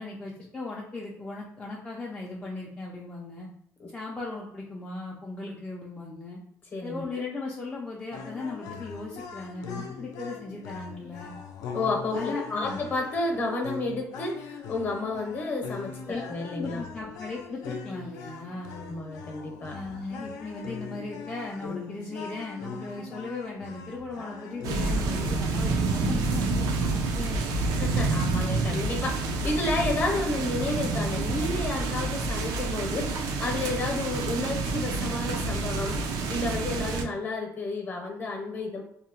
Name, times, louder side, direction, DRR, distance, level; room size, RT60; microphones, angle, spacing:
voice 1, 0.0-3.5 3.9-6.4 6.8-11.3 12.1-12.8 16.1-16.2 16.5-18.8 19.7-27.6, left 3 dB, 15° left, -4 dB, 0.3 m, -37 dB
voice 2, 6.7-7.2 11.7-16.8 18.7-19.8 27.7-38.8, left 2 dB, 35° left, 0 dB, 0.7 m, -31 dB
sound 1, 8.1-25.3, left 5 dB, 90° left, 0.4 m, -41 dB
sound 2, 24.6-37.0, right 3 dB, 90° right, 0.4 m, -28 dB
2.7 x 2.1 x 2.8 m, 0.71 s
cardioid pair, 150°, 6 cm